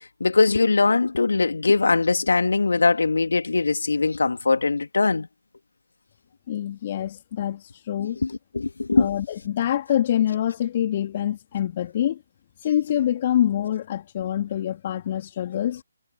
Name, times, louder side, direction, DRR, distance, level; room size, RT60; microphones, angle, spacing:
voice 1, 0.2-5.3 8.0-9.1, left 3 dB, 65° left, 2.7 m, -21 dB
voice 2, 6.5-8.2 9.0-12.2 12.6-15.8, left 11 dB, 35° left, 3.7 m, -25 dB
figure-of-eight pair, 140°, 0 cm